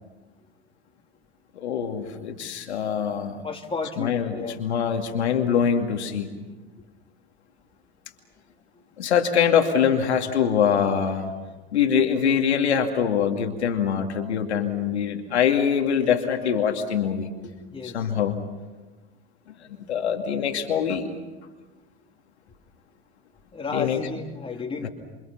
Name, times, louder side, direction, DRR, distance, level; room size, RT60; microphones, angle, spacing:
voice 1, 1.6-3.4 4.0-6.3 9.0-11.3 11.7-17.3 17.8-18.4 19.8-21.1 23.7-24.0 24.8-24.9, left 7 dB, 80° left, 3 dB, 2.6 m, -23 dB
voice 2, 3.4-4.6 17.7-18.1 23.5-24.9, left 4 dB, 15° left, 2 dB, 3.2 m, -32 dB
28.0 x 28.0 x 5.9 m, 1.2 s
hypercardioid pair, 85°, 32 cm